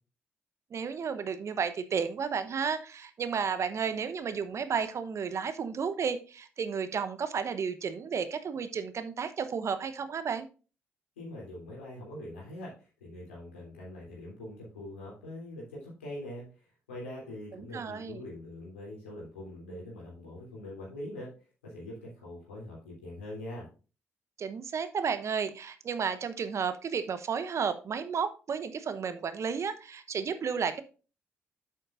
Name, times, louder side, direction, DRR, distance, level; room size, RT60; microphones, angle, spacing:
voice 1, 0.7-10.5 17.5-18.2 24.4-30.8, right 6 dB, 50° right, 11 dB, 0.9 m, -32 dB
voice 2, 11.2-16.5 16.9-21.3 21.6-23.7, left 1 dB, 85° left, -4 dB, 3.2 m, -43 dB
9.3 x 7.9 x 2.5 m, 0.34 s
figure-of-eight pair, 45°, 6 cm